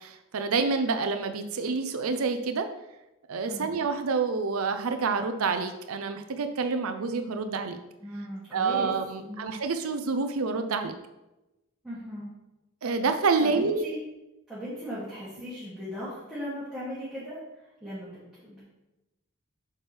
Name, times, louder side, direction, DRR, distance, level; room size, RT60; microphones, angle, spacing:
voice 1, 0.0-2.7 3.3-7.8 8.5-10.9 12.8-13.9, right 4 dB, 80° right, 7 dB, 0.6 m, -28 dB
voice 2, 8.0-9.6 11.8-12.3 13.4-14.0 14.5-17.4 17.8-18.6, equal, 5° right, -11 dB, 2.4 m, -38 dB
8.7 x 6.0 x 3.4 m, 0.98 s
head